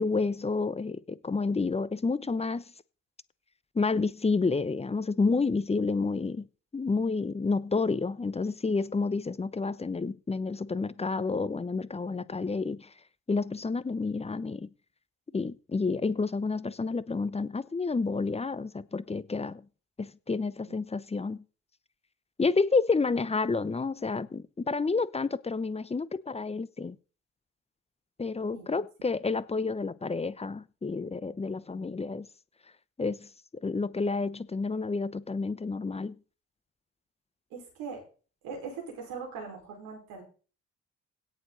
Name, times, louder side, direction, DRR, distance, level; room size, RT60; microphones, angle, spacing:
voice 1, 0.0-2.6 3.7-6.5 6.7-12.9 13.3-14.7 15.3-19.6 20.0-21.4 22.4-27.0 28.2-32.3 33.0-33.3 33.6-36.1, left 4 dB, 20° left, 0.8 m, -29 dB
voice 2, 37.5-38.0 38.4-40.2, right 5 dB, 70° right, 5.2 m, -40 dB
17.0 x 7.1 x 4.1 m
figure-of-eight pair, 45°, 35 cm